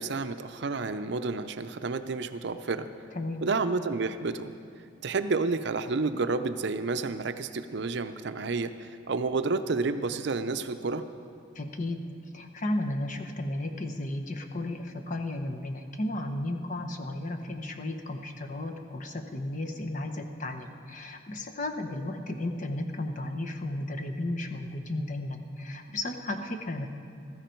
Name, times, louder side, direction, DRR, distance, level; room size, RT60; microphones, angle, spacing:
voice 1, 0.0-2.9 3.4-4.5 5.0-11.0, right 3 dB, 60° right, 10 dB, 0.5 m, -30 dB
voice 2, 11.5-12.0 12.3-26.9, left 1 dB, 40° left, 5 dB, 0.9 m, -34 dB
15.5 x 14.0 x 4.5 m, 2.4 s
head